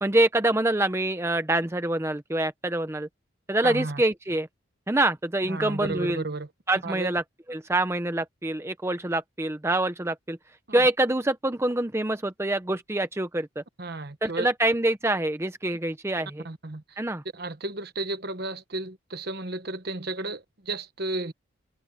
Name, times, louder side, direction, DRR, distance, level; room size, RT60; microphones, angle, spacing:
voice 1, 0.0-3.1 3.5-4.5 4.9-6.2 6.7-7.2 7.5-10.4 10.7-13.6 14.2-16.5 17.0-17.2, right 1 dB, 15° right, 0.6 m, -25 dB
voice 2, 3.6-4.0 5.5-6.5 6.8-7.1 10.7-10.8 13.8-14.5 16.4-17.0 17.3-21.3, right 2 dB, 50° right, 1.2 m, -33 dB
head